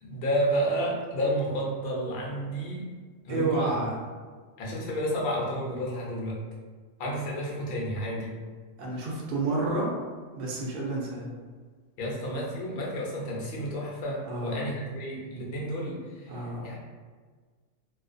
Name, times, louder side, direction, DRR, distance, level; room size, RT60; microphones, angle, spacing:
voice 1, 0.0-2.8 3.2-3.9 4.6-6.4 7.0-8.3 12.0-16.8, equal, 55° left, -3 dB, 0.7 m, -31 dB
voice 2, 3.3-4.0 8.8-9.9 10.3-11.3 14.2-14.7 16.3-16.8, right 2 dB, 60° right, -2 dB, 0.6 m, -30 dB
2.4 x 2.2 x 2.5 m, 1.5 s
omnidirectional pair, 1.3 m